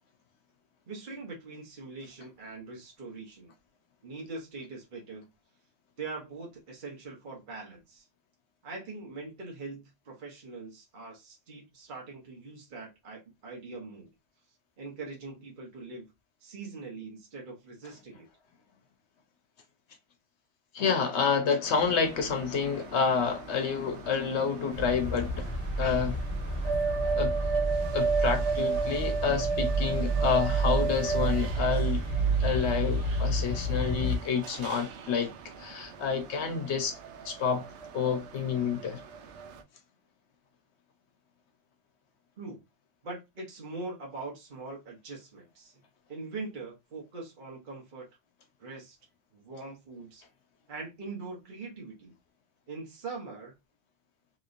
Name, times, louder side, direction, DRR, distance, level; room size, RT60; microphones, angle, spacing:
voice 1, 0.9-3.5 4.0-5.3 6.0-8.1 8.6-14.1 14.8-16.1 16.4-18.3 42.4-42.6 43.0-45.8 46.1-48.1 48.6-49.0 49.3-50.2 50.7-52.1 52.7-53.5, right 3 dB, 50° right, 1.1 m, -42 dB
voice 2, 20.7-25.5 25.8-26.2 27.1-27.3 27.9-32.0 32.4-35.3 35.6-37.0 37.2-37.6 37.9-39.0, left 6 dB, 75° left, 1.1 m, -29 dB
sound 1, 21.6-39.6, right 5 dB, 80° right, 0.9 m, -35 dB
sound 2, 24.7-34.2, right 2 dB, 25° left, 1.3 m, -30 dB
3.1 x 3.0 x 2.5 m
omnidirectional pair, 1.2 m